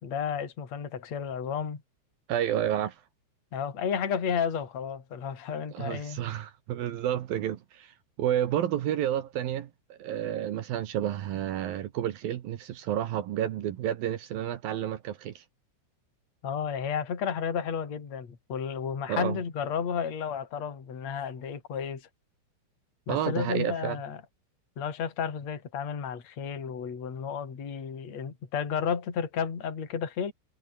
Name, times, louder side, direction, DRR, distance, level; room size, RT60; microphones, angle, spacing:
voice 1, 0.0-1.8 3.5-6.2 16.4-22.1 23.1-24.2 24.8-30.3, left 7 dB, 40° left, 4.5 m, -32 dB
voice 2, 2.3-3.0 5.7-15.4 19.1-19.4 23.1-24.0, right 11 dB, 65° right, 2.6 m, -30 dB
omnidirectional pair, 5.3 m